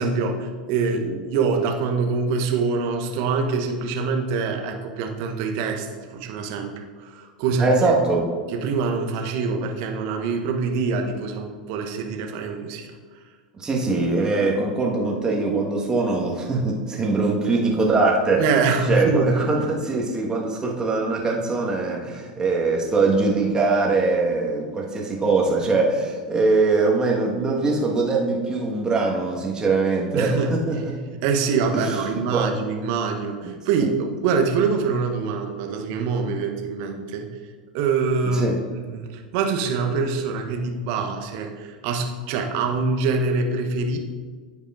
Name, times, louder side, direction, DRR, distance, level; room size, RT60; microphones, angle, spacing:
voice 1, 0.0-7.7 8.5-13.0 14.2-14.4 18.4-19.3 30.1-30.8 31.1-37.3 37.7-44.0, right 4 dB, 50° right, 3 dB, 0.9 m, -25 dB
voice 2, 7.6-8.3 13.6-18.5 18.9-30.9 31.7-32.4 33.8-33.9 38.3-38.6, right 3 dB, 15° right, -1 dB, 1.5 m, -22 dB
14.0 x 5.3 x 2.5 m, 1.6 s
figure-of-eight pair, 85°, 4 cm